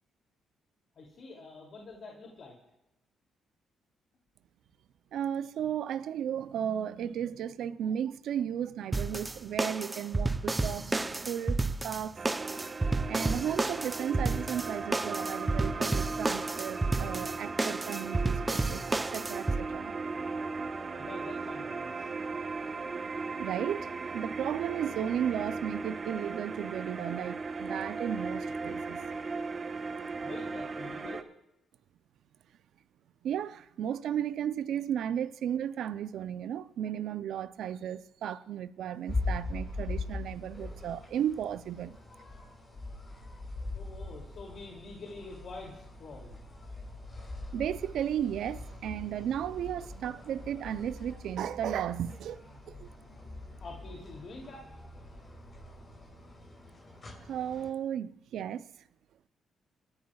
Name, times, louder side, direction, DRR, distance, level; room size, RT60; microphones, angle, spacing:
voice 1, 0.9-2.6 20.7-22.1 30.2-31.2 43.7-46.4 53.0-54.7, left 3 dB, 60° left, 2.7 m, -46 dB
voice 2, 5.1-12.2 13.1-18.8 19.1-19.9 20.2-20.3 22.6-22.7 23.3-29.0 33.2-42.0 47.5-52.9 57.2-58.7, right 9 dB, 75° right, 0.5 m, -34 dB
sound 1, 8.9-19.6, right 3 dB, 20° right, 0.7 m, -31 dB
sound 2, 12.2-31.2, right 4 dB, 40° right, 1.2 m, -37 dB
sound 3, 39.1-57.7, left 2 dB, 40° left, 6.4 m, -41 dB
26.5 x 13.5 x 2.4 m
supercardioid pair, 60°, 0 cm